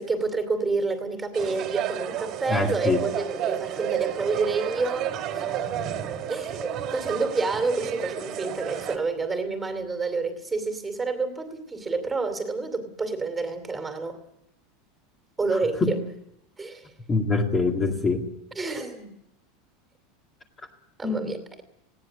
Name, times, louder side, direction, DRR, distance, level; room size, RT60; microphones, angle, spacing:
voice 1, 0.0-5.4 6.3-14.2 15.4-16.0 16.6-16.9 18.6-19.1 21.0-21.6, right 3 dB, 10° right, 8 dB, 2.6 m, -29 dB
sound 1, 1.3-9.0, right 10 dB, 35° right, 2.3 m, -31 dB
voice 2, 2.5-3.0 15.5-16.0 17.1-18.2 21.0-21.3, left 3 dB, 15° left, 2 dB, 2.1 m, -24 dB
19.5 x 17.5 x 9.1 m, 0.80 s
supercardioid pair, 165°, 0 cm